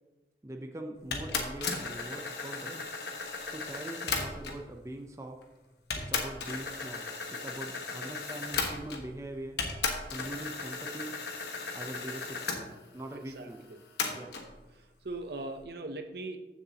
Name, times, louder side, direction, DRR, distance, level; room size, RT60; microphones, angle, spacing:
voice 1, 0.4-2.9 3.5-5.4 6.0-7.0 7.3-9.6 10.1-11.2 11.7-13.6 14.1-14.3, right 1 dB, 15° right, 3 dB, 0.6 m, -42 dB
sound 1, 1.1-4.7 5.4-5.5 5.9-9.2 9.6-12.6 14.0-14.5, left 4 dB, 70° left, 1.3 m, -35 dB
voice 2, 13.1-13.8 14.7-16.4, right 2 dB, 60° right, 5 dB, 0.7 m, -41 dB
14.5 x 6.9 x 2.8 m, 1.1 s
head